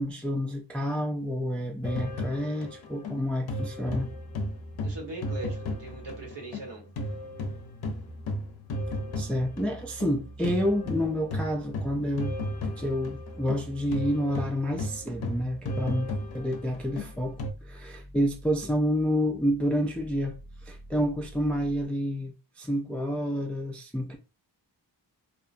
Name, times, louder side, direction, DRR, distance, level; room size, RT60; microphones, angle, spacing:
voice 1, 0.0-4.1 9.2-12.4 12.8-20.4 20.6-24.2, equal, 5° left, 0.3 m, -29 dB
sound 1, 1.8-6.7 7.0-17.5, left 1 dB, 60° left, 0.6 m, -34 dB
sound 2, 3.8-21.8, right 1 dB, 35° right, 0.9 m, -47 dB
voice 2, 4.8-6.8, right 2 dB, 75° right, 1.3 m, -40 dB
2.8 x 2.1 x 2.5 m
cardioid pair, 70°, 43 cm